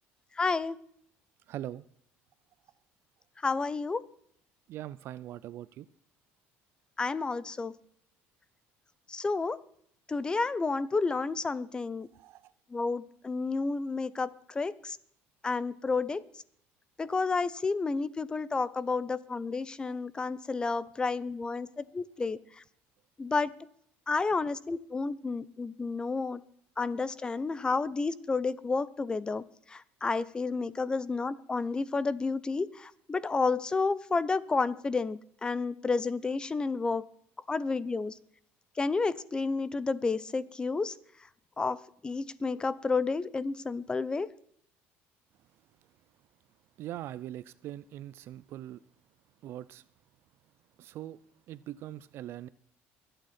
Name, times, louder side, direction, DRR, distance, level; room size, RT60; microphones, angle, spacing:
voice 1, 0.4-0.8 3.4-4.0 7.0-7.7 9.1-9.6 10.1-12.1 12.7-15.0 15.4-16.2 17.0-21.7 21.9-22.4 23.2-23.5 24.1-26.4 26.8-29.4 29.7-37.0 37.5-38.1 38.8-40.9 41.6-41.8 42.0-44.3, left 4 dB, 20° left, 0.7 m, -30 dB
voice 2, 1.5-1.8 4.7-5.9 12.1-12.5 19.9-20.0 46.8-48.8 49.4-49.8 50.8-51.2 51.5-52.5, right 13 dB, 60° right, 0.5 m, -41 dB
23.0 x 9.0 x 4.3 m
cardioid pair, 125°, 5 cm